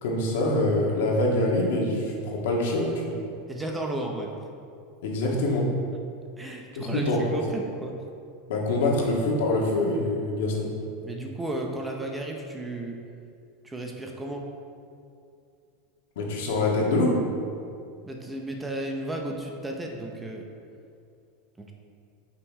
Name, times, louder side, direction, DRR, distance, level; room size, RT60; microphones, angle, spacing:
voice 1, 0.0-3.2 5.0-5.7 6.8-7.4 8.5-10.7 16.2-17.2, left 2 dB, 80° left, -2 dB, 1.8 m, -25 dB
voice 2, 3.5-4.3 6.4-7.9 11.0-13.0 13.6-14.5 18.0-20.4 21.6-21.7, right 1 dB, 10° right, 1 dB, 0.7 m, -34 dB
7.6 x 5.8 x 4.8 m, 2.4 s
supercardioid pair, 150°, 0 cm